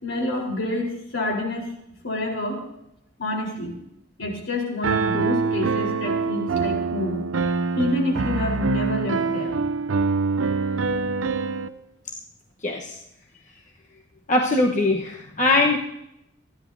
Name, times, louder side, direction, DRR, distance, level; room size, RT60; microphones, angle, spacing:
voice 1, 0.0-1.7 2.0-2.6 3.2-3.8 4.2-7.2 7.8-9.6, left 1 dB, 70° left, 0 dB, 4.0 m, -27 dB
Piano, 4.8-11.7, right 4 dB, 80° right, 0.6 m, -25 dB
voice 2, 12.6-13.0 14.3-15.8, left 2 dB, 40° left, 0 dB, 1.1 m, -21 dB
27.5 x 10.5 x 2.7 m, 0.81 s
head